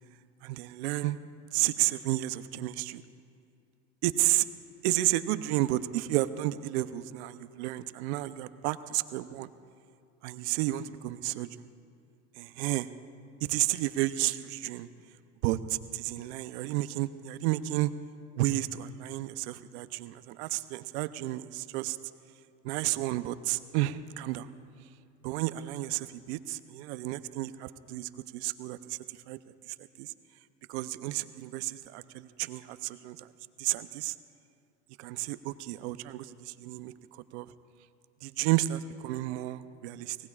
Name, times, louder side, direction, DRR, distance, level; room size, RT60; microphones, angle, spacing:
voice 1, 0.4-1.2 1.5-3.0 4.0-4.4 4.8-9.5 10.2-11.5 12.4-12.9 13.4-14.9 15.4-17.9 18.4-22.0 22.6-24.5 25.2-29.0 29.3-29.4 29.7-30.1 30.7-33.3 33.6-34.1 35.0-37.5 38.2-40.2, right 16 dB, 70° right, 13 dB, 0.7 m, -31 dB
25.0 x 18.0 x 2.4 m, 2.4 s
supercardioid pair, 110°, 34 cm